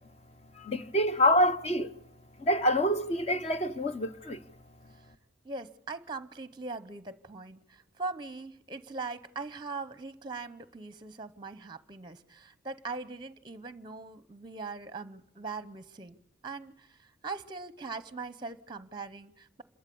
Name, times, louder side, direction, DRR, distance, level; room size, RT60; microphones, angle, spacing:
voice 1, 0.6-1.9 2.4-4.4, equal, 35° left, 0.8 m, -26 dB
voice 2, 5.4-16.2 16.4-19.6, right 3 dB, 25° right, 0.8 m, -41 dB
27.0 x 13.5 x 8.5 m
head